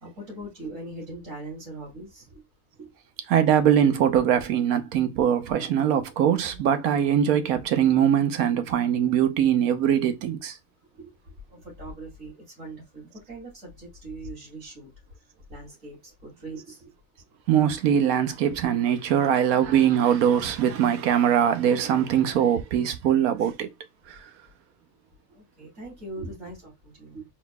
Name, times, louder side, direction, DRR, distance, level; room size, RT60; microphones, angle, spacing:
voice 1, 0.0-2.2 2.8-2.9 11.0-11.1 11.5-12.3 12.6-14.9 15.5-16.0 16.2-16.9 25.3-27.2, right 2 dB, 60° right, 2.9 m, -40 dB
voice 2, 3.3-10.6 17.5-23.7 24.1-24.2, right 9 dB, 80° right, 1.2 m, -22 dB
4.4 x 4.1 x 2.2 m
omnidirectional pair, 1.5 m